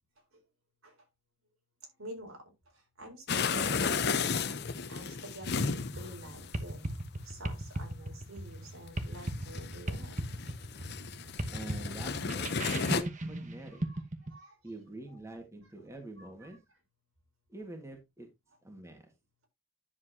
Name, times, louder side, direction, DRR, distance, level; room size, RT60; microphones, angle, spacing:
voice 1, 2.0-2.4 3.0-6.8 7.2-10.2 13.8-14.0 14.3-14.5 15.1-15.2 16.2-16.5, right 1 dB, 85° right, 1 dB, 4.3 m, -48 dB
sound 1, 3.3-13.0, left 5 dB, 50° left, 0.8 m, -34 dB
sound 2, 5.4-14.3, right 1 dB, 35° right, 1.1 m, -38 dB
voice 2, 11.5-13.8 14.6-16.6 17.5-18.3 18.6-19.1, right 2 dB, 15° right, 3 dB, 1.7 m, -45 dB
10.5 x 7.2 x 2.8 m, 0.21 s
head